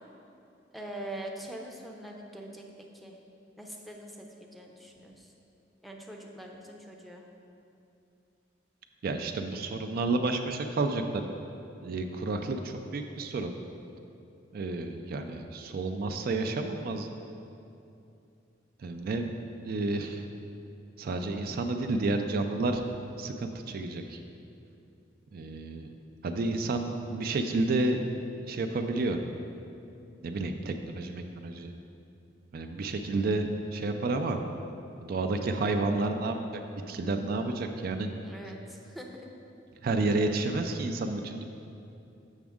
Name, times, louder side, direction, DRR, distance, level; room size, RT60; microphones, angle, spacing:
voice 1, 0.7-2.6 2.9-3.2 3.6-5.3 5.8-7.2 38.2-39.2, right 1 dB, ahead, 0 dB, 0.5 m, -43 dB
voice 2, 9.0-11.2 11.8-13.5 14.5-17.1 18.8-19.3 19.6-20.2 21.0-22.8 23.2-24.2 25.3-25.9 26.2-28.1 28.5-29.2 30.2-31.7 32.5-34.4 35.0-36.6 36.9-38.1 39.8-41.4, right 2 dB, 55° right, 5 dB, 0.4 m, -30 dB
7.2 x 6.0 x 3.5 m, 2.7 s
head